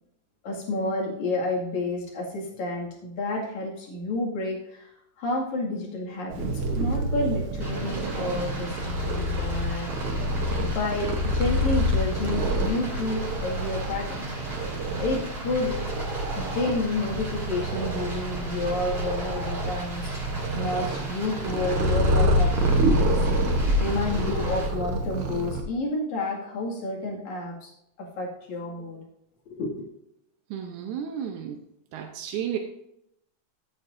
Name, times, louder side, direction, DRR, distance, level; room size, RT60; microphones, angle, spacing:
voice 1, 0.4-4.9 5.2-6.5 6.7-9.9 10.6-14.3 15.0-15.7 16.4-20.1 20.5-23.3 23.8-27.7 28.0-29.0 29.5-29.7, left 2 dB, 75° left, -2 dB, 3.6 m, -30 dB
Purr, 6.3-25.6, equal, 60° right, 1.9 m, -27 dB
Stream, 7.6-24.7, right 1 dB, 35° right, 4.8 m, -39 dB
voice 2, 30.5-31.6 31.9-32.6, right 9 dB, 85° right, 3 dB, 2.3 m, -32 dB
14.0 x 9.2 x 2.6 m, 0.80 s
omnidirectional pair, 3.3 m